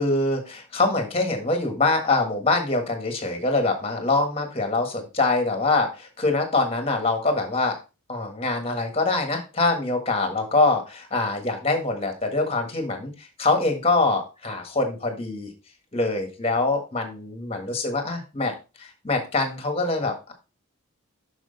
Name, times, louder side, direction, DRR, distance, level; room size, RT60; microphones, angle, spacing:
voice 1, 0.0-7.7 8.1-15.5 15.9-18.5 18.8-20.3, left 3 dB, 25° left, 5 dB, 1.5 m, -24 dB
6.2 x 6.1 x 4.0 m, 0.29 s
head